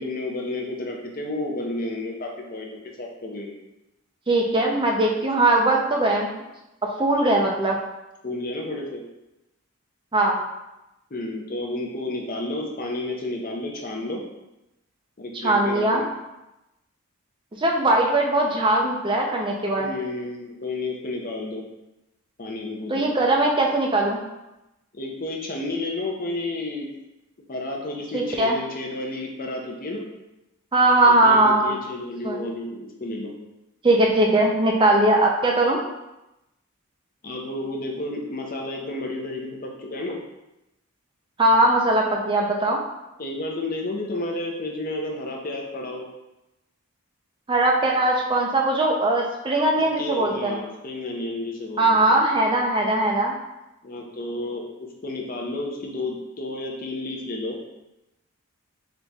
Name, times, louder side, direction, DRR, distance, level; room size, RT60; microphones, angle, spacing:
voice 1, 0.0-3.6 8.2-9.0 11.1-14.2 15.2-16.1 19.8-21.6 22.4-23.0 24.9-26.9 27.5-30.1 31.1-33.3 37.2-40.2 43.2-46.1 49.8-52.1 53.8-57.6, left 2 dB, 40° left, 0 dB, 0.6 m, -31 dB
voice 2, 4.3-6.3 7.0-7.8 10.1-10.4 15.4-16.0 17.6-19.9 22.9-24.2 28.1-28.6 30.7-31.7 32.2-32.4 33.8-35.8 41.4-42.8 47.5-50.6 51.8-53.3, right 2 dB, 20° right, 0 dB, 0.5 m, -20 dB
3.9 x 3.0 x 3.4 m, 0.94 s
head